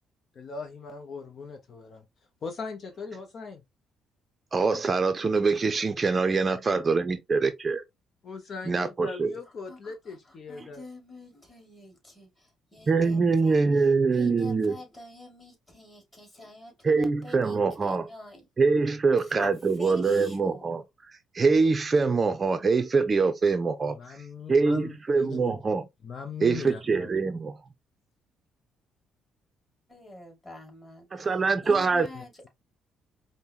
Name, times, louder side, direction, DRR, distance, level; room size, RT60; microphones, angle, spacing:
voice 1, 0.4-2.0 2.4-3.6 8.2-10.8 23.9-25.5 26.0-27.1 32.1-32.2, left 5 dB, 50° left, 0.6 m, -40 dB
voice 2, 4.5-7.8 8.7-9.3 12.9-14.8 16.8-18.1 18.6-20.8 21.3-24.2 24.5-25.9 26.4-27.6 31.1-32.1, right 4 dB, 35° right, 0.5 m, -24 dB
voice 3, 9.7-10.2 10.5-13.8 14.1-18.4 19.4-19.5 19.8-20.7 29.9-31.3 31.6-32.5, left 1 dB, 20° left, 2.5 m, -46 dB
5.2 x 2.1 x 2.8 m
cardioid pair, 85°, 0 cm